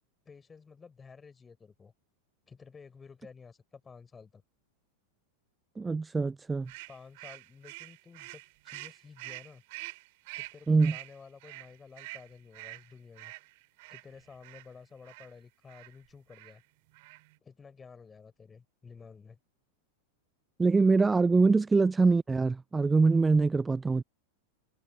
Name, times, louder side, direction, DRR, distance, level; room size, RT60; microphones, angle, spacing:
voice 1, 0.3-1.9 2.5-4.4 6.9-9.6 10.4-13.3 13.9-16.6 17.4-19.4 21.4-21.5, left 5 dB, 15° left, 4.0 m, -52 dB
voice 2, 5.8-6.7 10.7-10.9 20.6-24.0, right 4 dB, 10° right, 0.5 m, -24 dB
sound 1, 6.7-14.7 15.0-15.3 15.7-15.9 16.3-16.6 16.9-17.4, right 24 dB, 50° right, 5.8 m, -46 dB
figure-of-eight pair, 90°, 0 cm